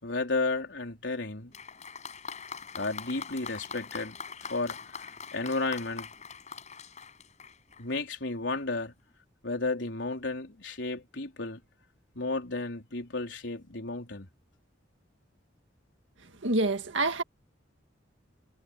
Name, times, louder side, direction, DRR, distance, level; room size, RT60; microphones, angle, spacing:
voice 1, 0.0-1.5 2.8-6.1 7.8-8.9 9.4-11.6 12.1-14.3, left 3 dB, 75° left, 3.9 m, -33 dB
Applause, 1.5-8.0 8.9-9.0, left 6 dB, 40° left, 6.7 m, -43 dB
voice 2, 16.2-17.2, right 2 dB, 85° right, 1.9 m, -27 dB
head